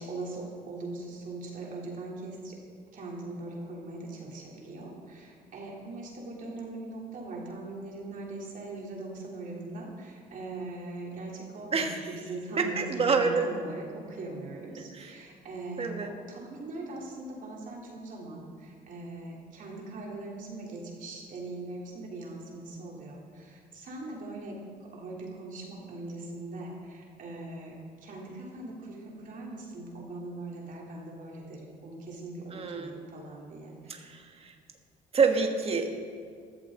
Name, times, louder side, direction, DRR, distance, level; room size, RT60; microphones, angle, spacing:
voice 1, 0.0-2.5 2.9-15.9 16.3-24.6 24.9-27.7 28.0-34.0, right 2 dB, 55° right, -3 dB, 3.4 m, -41 dB
voice 2, 11.7-12.1 12.6-13.5 14.9-15.2 15.8-16.1 32.5-33.0 33.9-34.5 35.1-35.9, right 5 dB, 35° right, 5 dB, 1.5 m, -27 dB
14.5 x 13.0 x 3.9 m, 2.1 s
cardioid pair, 110°, 17 cm